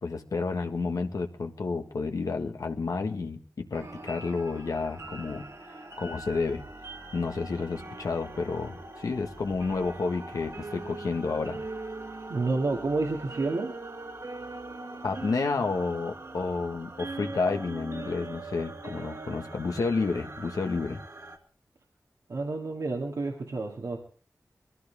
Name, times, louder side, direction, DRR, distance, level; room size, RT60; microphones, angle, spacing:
voice 1, 0.0-6.6 7.1-11.6 15.0-21.0, left 4 dB, 85° left, 5 dB, 1.5 m, -30 dB
sound 1, 3.7-21.4, right 2 dB, 60° right, 2.4 m, -41 dB
voice 2, 12.3-13.7 22.3-24.0, right 3 dB, 80° right, 0 dB, 2.2 m, -29 dB
21.5 x 15.0 x 3.5 m, 0.40 s
wide cardioid pair, 60°, 6 cm